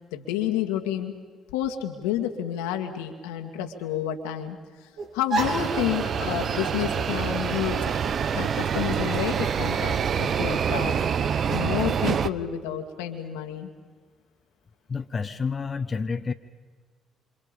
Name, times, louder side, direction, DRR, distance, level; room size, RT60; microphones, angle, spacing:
voice 1, 0.1-1.1 1.5-4.6 5.1-10.9 11.5-13.7, left 10 dB, 85° left, 4 dB, 2.2 m, -30 dB
sound 1, 5.0-10.0, right 3 dB, 75° right, 5.1 m, -35 dB
sound 2, 5.4-12.3, right 7 dB, 55° right, 0.9 m, -26 dB
voice 2, 14.9-16.3, left 5 dB, 40° left, 6 dB, 1.3 m, -29 dB
28.0 x 26.5 x 5.4 m, 1.5 s
hypercardioid pair, 50°, 0 cm